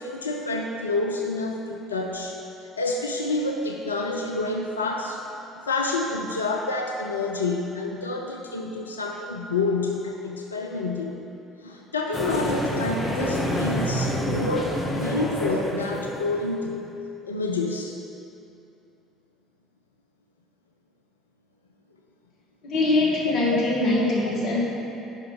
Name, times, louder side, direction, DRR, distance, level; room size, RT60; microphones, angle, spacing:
voice 1, 0.0-2.4 2.8-5.2 5.5-11.3 11.6-16.9 17.3-18.0 23.2-23.6, left 3 dB, 85° left, 1 dB, 0.4 m, -28 dB
sound 1, 12.1-16.5, left 1 dB, 30° left, 1.4 m, -27 dB
voice 2, 22.6-24.6, left 2 dB, 55° left, -3 dB, 1.6 m, -22 dB
8.0 x 5.5 x 5.0 m, 2.8 s
figure-of-eight pair, 55°, 0 cm